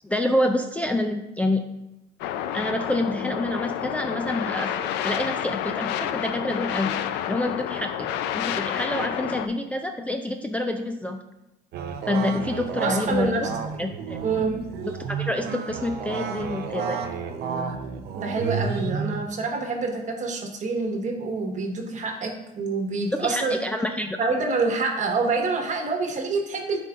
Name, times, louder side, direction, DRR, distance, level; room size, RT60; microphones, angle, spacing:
voice 1, 0.0-1.6 2.5-4.7 5.0-11.2 12.1-13.5 13.8-14.2 14.8-17.1 23.1-24.2, left 1 dB, 10° left, 3 dB, 0.4 m, -27 dB
sound 1, 2.2-9.5, left 10 dB, 85° left, 0.4 m, -29 dB
sound 2, 11.7-19.3, right 6 dB, 75° right, 0.6 m, -31 dB
voice 2, 12.7-13.4 14.2-14.5 18.2-23.5 24.2-26.8, right 3 dB, 45° right, 3 dB, 1.2 m, -26 dB
11.0 x 4.2 x 2.4 m, 0.92 s
cardioid pair, 110°, 17 cm